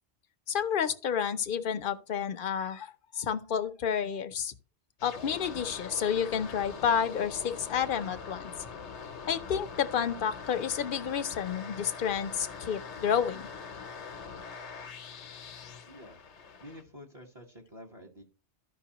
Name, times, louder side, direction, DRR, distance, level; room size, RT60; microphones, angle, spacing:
voice 1, 0.5-4.5 5.0-8.5 9.3-13.5, left 8 dB, 55° left, 0.8 m, -30 dB
sound 1, 5.0-16.8, left 5 dB, 85° left, 1.1 m, -43 dB
voice 2, 15.9-16.3 16.6-18.2, equal, 30° right, 1.4 m, -49 dB
13.5 x 5.4 x 2.9 m
omnidirectional pair, 1.1 m